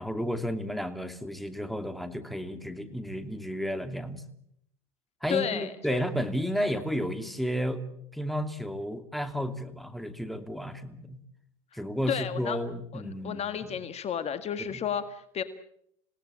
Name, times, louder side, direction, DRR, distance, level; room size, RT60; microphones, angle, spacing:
voice 1, 0.0-4.2 5.2-7.8 8.1-11.2 11.7-13.8 14.7-14.8, equal, ahead, 9 dB, 2.6 m, -32 dB
voice 2, 5.3-6.0 6.5-6.8 12.1-12.6 12.9-15.4, left 8 dB, 35° left, 11 dB, 1.7 m, -32 dB
27.5 x 18.0 x 8.6 m, 0.72 s
hypercardioid pair, 95°, 18 cm